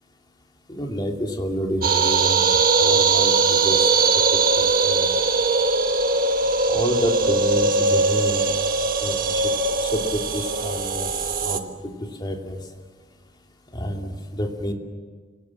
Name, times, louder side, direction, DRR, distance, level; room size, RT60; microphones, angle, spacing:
voice 1, 0.7-4.2 4.6-5.1 6.7-8.4 9.0-9.5 9.8-11.1 11.4-11.6 12.2-12.6 13.7-14.7, equal, 25° left, 1 dB, 2.6 m, -29 dB
sound 1, 1.8-11.6, right 4 dB, 50° right, 1.4 m, -20 dB
29.0 x 18.0 x 7.6 m, 1.5 s
head